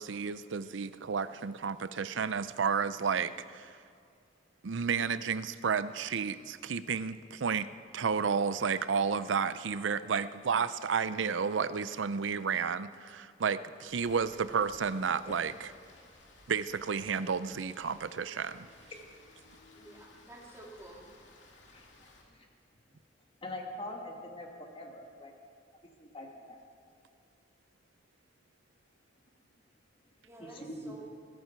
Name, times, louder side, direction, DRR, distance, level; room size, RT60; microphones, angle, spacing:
voice 1, 0.0-3.8 4.6-7.7 7.9-15.7 16.5-18.7, right 6 dB, 90° right, 14 dB, 0.5 m, -32 dB
Rain, 13.9-22.2, left 2 dB, 75° left, 2.5 m, -58 dB
voice 2, 19.7-21.1 30.2-31.0, right 1 dB, 15° right, -3 dB, 2.6 m, -50 dB
voice 3, 23.4-25.3 26.0-26.6 30.4-30.9, left 1 dB, 30° left, 1 dB, 1.9 m, -43 dB
21.0 x 15.0 x 4.6 m, 2.3 s
head